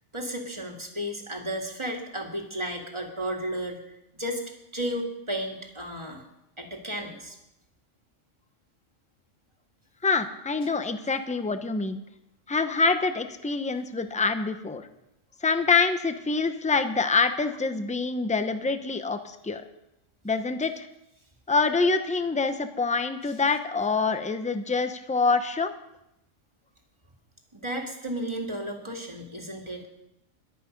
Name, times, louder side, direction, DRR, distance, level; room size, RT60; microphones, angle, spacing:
voice 1, 0.1-3.8 4.1-4.4 4.7-6.2 6.6-7.4 27.5-29.9, equal, 20° right, 1 dB, 2.3 m, -33 dB
voice 2, 10.0-12.0 12.5-14.9 15.4-19.6 20.2-20.9 21.5-25.7, left 4 dB, 5° left, 8 dB, 0.7 m, -26 dB
22.5 x 8.4 x 5.3 m, 0.87 s
omnidirectional pair, 1.3 m